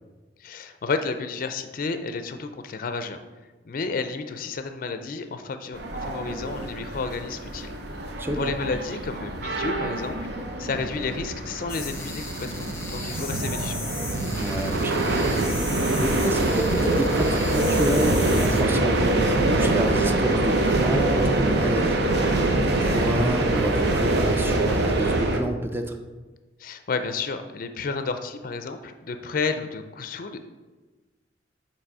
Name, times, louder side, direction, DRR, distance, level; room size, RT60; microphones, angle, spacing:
voice 1, 0.4-3.2 3.6-7.7 8.4-10.1 10.6-13.8 26.6-30.4, left 4 dB, 50° left, 8 dB, 0.4 m, -31 dB
sound 1, 5.7-25.4, right 2 dB, 65° right, 0.7 m, -24 dB
sound 2, 11.7-18.6, left 3 dB, 15° left, 0.8 m, -37 dB
voice 2, 14.4-15.3 16.0-26.0, right 1 dB, 15° right, 6 dB, 0.4 m, -29 dB
7.4 x 3.0 x 4.7 m, 1.2 s
head